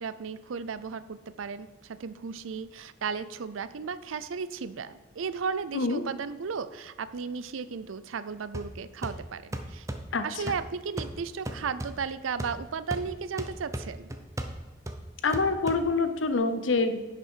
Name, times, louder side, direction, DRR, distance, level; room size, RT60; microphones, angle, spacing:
voice 1, 0.0-9.9 10.2-14.1, right 5 dB, 90° right, 15 dB, 0.5 m, -35 dB
sound 1, 8.5-16.3, right 1 dB, 15° right, 0.6 m, -39 dB
voice 2, 15.2-17.0, left 3 dB, 75° left, 9 dB, 0.8 m, -26 dB
10.5 x 6.0 x 4.5 m, 1.2 s
head